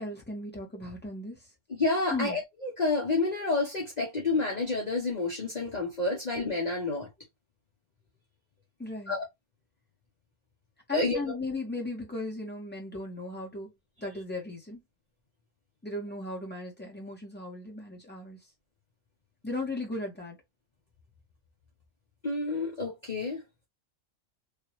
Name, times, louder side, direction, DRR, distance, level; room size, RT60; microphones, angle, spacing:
voice 1, 0.0-1.5 2.1-2.4 8.8-9.2 10.9-13.7 14.0-14.8 15.8-18.4 19.4-20.4, left 2 dB, 10° left, 1.4 m, -36 dB
voice 2, 1.7-7.1 9.1-9.2 10.9-11.2 22.2-23.4, left 3 dB, 40° left, 0.9 m, -29 dB
3.3 x 2.8 x 3.0 m
omnidirectional pair, 1.3 m